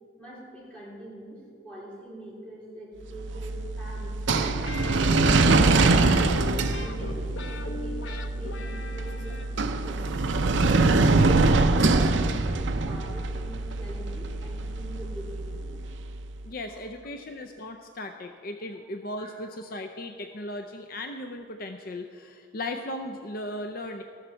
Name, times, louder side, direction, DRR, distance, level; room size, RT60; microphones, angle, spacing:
voice 1, 0.2-6.3 6.8-10.1 10.5-15.8 19.2-19.3, right 1 dB, 5° left, -7 dB, 3.9 m, -44 dB
sound 1, 3.1-16.2, right 3 dB, 70° right, 0.6 m, -24 dB
sound 2, 4.3-9.9, left 3 dB, 75° left, 0.9 m, -39 dB
voice 2, 16.4-24.0, left 1 dB, 50° left, 6 dB, 0.6 m, -37 dB
14.0 x 13.0 x 4.5 m, 2.4 s
head